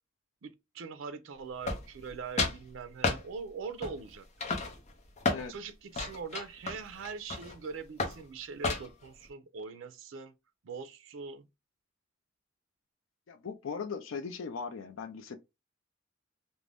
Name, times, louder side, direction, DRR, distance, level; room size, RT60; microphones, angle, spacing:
voice 1, 0.4-4.3 5.5-10.3 10.6-11.5, right 5 dB, 80° right, 0.5 m, -42 dB
sound 1, 1.6-2.1 2.4-2.6 3.0-3.2 3.8-4.1 4.4-5.5 5.9-7.6 8.0-8.2 8.6-9.1, left 3 dB, 35° left, 0.6 m, -32 dB
voice 2, 13.3-15.4, left 5 dB, 80° left, 0.4 m, -38 dB
2.5 x 2.0 x 3.3 m
head